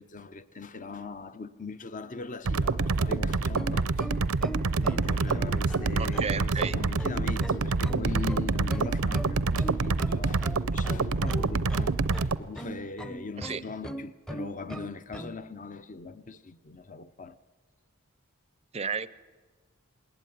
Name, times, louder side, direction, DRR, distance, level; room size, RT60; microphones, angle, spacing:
voice 1, 0.0-4.1 4.8-17.4, left 4 dB, 35° left, 0.8 m, -40 dB
sound 1, 2.4-12.4, right 3 dB, 80° right, 0.7 m, -27 dB
sound 2, 3.2-13.4 14.1-14.2, equal, 65° left, 5.9 m, -58 dB
sound 3, 3.6-15.4, right 1 dB, 5° left, 0.8 m, -40 dB
voice 2, 6.0-6.7 13.4-13.6 18.7-19.1, right 6 dB, 30° right, 0.6 m, -32 dB
19.5 x 19.5 x 9.4 m
head